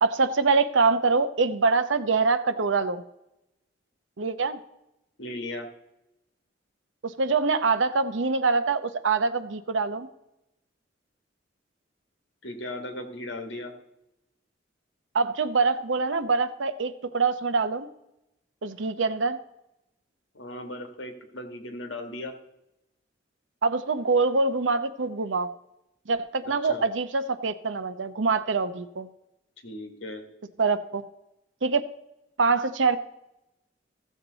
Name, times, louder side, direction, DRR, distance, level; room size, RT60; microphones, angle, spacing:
voice 1, 0.0-3.0 4.2-4.6 7.0-10.1 15.1-17.9 18.6-19.4 23.6-25.5 26.1-29.1 30.6-31.0 31.6-31.8 32.4-33.0, right 4 dB, 85° right, 12 dB, 0.7 m, -24 dB
voice 2, 5.2-5.7 12.4-13.7 20.3-22.3 26.6-26.8 29.6-30.2, left 1 dB, 70° left, 5 dB, 1.7 m, -37 dB
15.0 x 7.3 x 4.0 m, 0.89 s
head